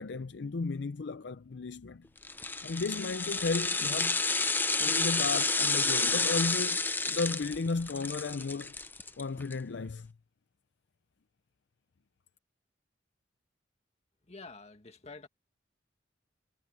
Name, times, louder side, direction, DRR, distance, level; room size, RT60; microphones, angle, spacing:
voice 1, 0.0-2.1 2.6-4.2 4.8-8.7 9.2-10.1, left 3 dB, 65° left, 0.5 m, -34 dB
sound 1, 2.2-9.5 9.9-10.0, left 3 dB, 10° left, 0.6 m, -30 dB
voice 2, 14.2-15.3, left 3 dB, 35° left, 2.0 m, -48 dB
head